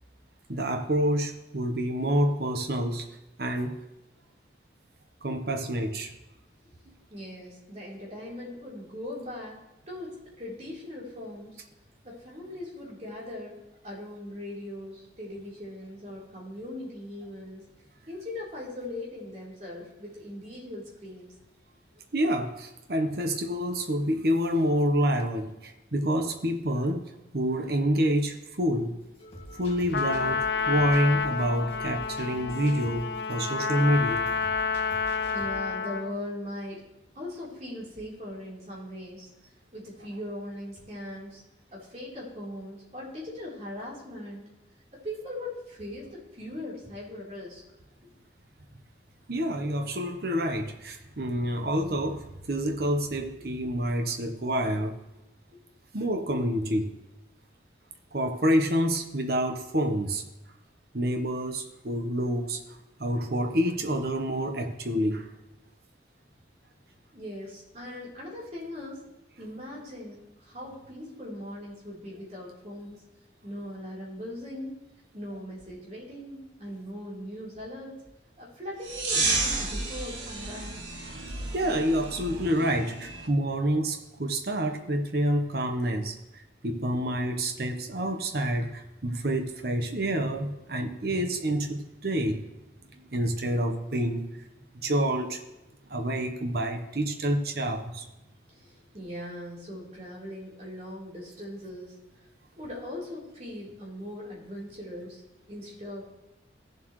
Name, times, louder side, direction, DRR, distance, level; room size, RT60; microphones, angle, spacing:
voice 1, 0.5-3.1 3.4-3.8 5.2-6.1 6.9-7.0 22.1-28.9 29.6-34.4 34.7-34.9 35.2-35.3 49.3-55.0 55.9-56.9 58.1-60.2 60.9-62.6 63.0-65.3 81.5-92.4 92.9-94.5 94.7-95.4 95.9-98.0, equal, 55° right, 5 dB, 1.1 m, -28 dB
voice 2, 7.1-9.6 9.9-11.6 12.0-13.6 13.8-17.6 18.1-21.3 35.3-36.8 37.2-39.3 39.7-41.4 41.7-44.4 44.9-47.6 67.1-69.0 69.4-73.0 73.4-78.0 78.4-80.9 84.8-84.9 98.5-102.0 102.6-105.2 105.5-106.1, left 1 dB, 40° right, -5 dB, 3.8 m, -40 dB
sound 1, 29.0-35.5, equal, 30° left, 2.2 m, -46 dB
Trumpet, 29.9-36.2, left 5 dB, 60° left, 0.5 m, -29 dB
sound 2, 78.8-83.3, right 3 dB, 85° right, 1.8 m, -31 dB
16.0 x 7.5 x 3.2 m, 0.95 s
head